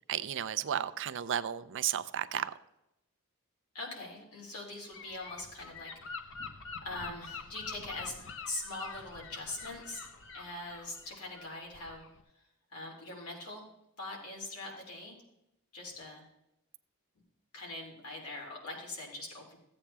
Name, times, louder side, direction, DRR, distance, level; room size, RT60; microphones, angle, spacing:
voice 1, 0.1-2.5, right 10 dB, 55° right, 13 dB, 0.5 m, -33 dB
voice 2, 3.7-5.9 6.2-6.3 6.8-8.1 8.4-10.0 10.3-12.1 12.7-13.6 14.0-15.2 15.7-16.3 17.5-19.6, left 2 dB, 85° left, -1 dB, 3.2 m, -42 dB
Gull seagull / Wind, 4.9-12.2, left 5 dB, 60° left, 0.8 m, -46 dB
15.0 x 8.5 x 3.4 m, 0.88 s
head